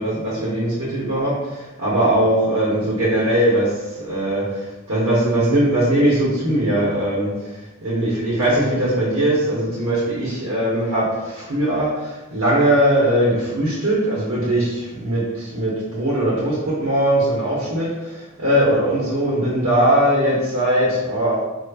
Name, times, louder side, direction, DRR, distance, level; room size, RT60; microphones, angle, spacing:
voice 1, 0.0-7.5 7.8-21.4, right 1 dB, 75° right, -7 dB, 0.9 m, -20 dB
4.5 x 2.0 x 2.3 m, 1.1 s
head